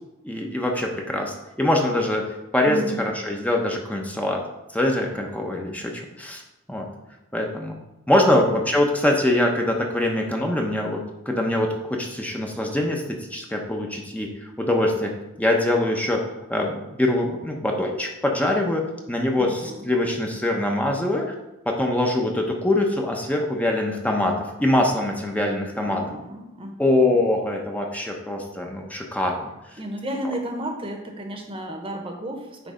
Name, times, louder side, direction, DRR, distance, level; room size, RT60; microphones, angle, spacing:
voice 1, 0.2-2.2 2.5-4.4 4.7-6.4 6.7-6.9 7.3-7.8 8.1-13.0 13.3-15.1 15.4-16.2 16.5-21.3 21.7-26.0 26.8-29.5, left 1 dB, 5° left, 1 dB, 0.8 m, -23 dB
voice 2, 2.6-3.0 8.2-8.6 19.3-19.9 25.7-27.2 29.8-32.7, right 1 dB, 25° right, 2 dB, 1.1 m, -33 dB
9.2 x 3.3 x 5.0 m, 0.98 s
head